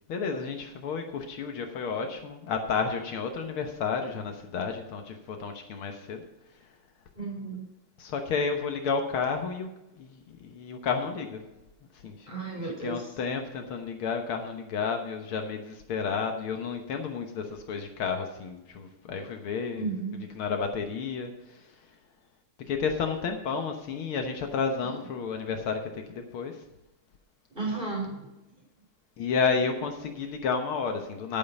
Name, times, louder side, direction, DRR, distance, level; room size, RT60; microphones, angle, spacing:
voice 1, 0.1-6.2 8.0-9.7 10.0-11.4 12.0-20.0 20.3-21.7 22.7-26.6 29.2-31.4, left 5 dB, 75° left, 5 dB, 2.0 m, -31 dB
voice 2, 7.1-7.6 12.3-13.0 19.7-20.2 27.5-28.3, right 3 dB, 20° right, -2 dB, 4.6 m, -33 dB
10.5 x 8.9 x 5.3 m, 0.96 s
omnidirectional pair, 2.4 m